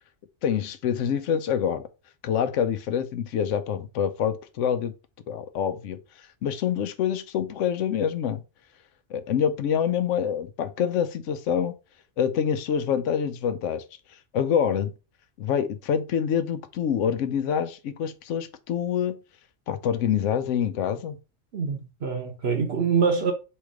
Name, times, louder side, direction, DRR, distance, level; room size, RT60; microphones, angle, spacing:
voice 1, 0.4-1.9 2.2-4.9 5.3-6.0 6.4-8.4 9.1-11.8 12.2-13.8 14.3-14.9 15.4-19.2 19.7-21.2, left 8 dB, 75° left, 0.9 m, -26 dB
voice 2, 21.5-23.3, right 5 dB, 60° right, 1.0 m, -25 dB
3.2 x 3.2 x 4.7 m
omnidirectional pair, 1.3 m